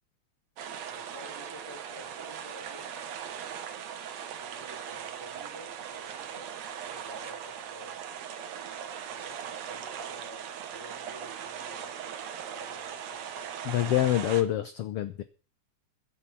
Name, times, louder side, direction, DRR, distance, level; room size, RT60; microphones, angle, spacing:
sound 1, 0.6-14.4, right 8 dB, 65° right, 2.5 m, -39 dB
voice 1, 0.8-3.1 4.4-8.0 9.1-11.9 12.5-13.5, equal, 10° right, 3.3 m, -51 dB
voice 2, 13.6-15.2, left 13 dB, 70° left, 1.5 m, -26 dB
14.5 x 10.5 x 5.8 m
omnidirectional pair, 3.4 m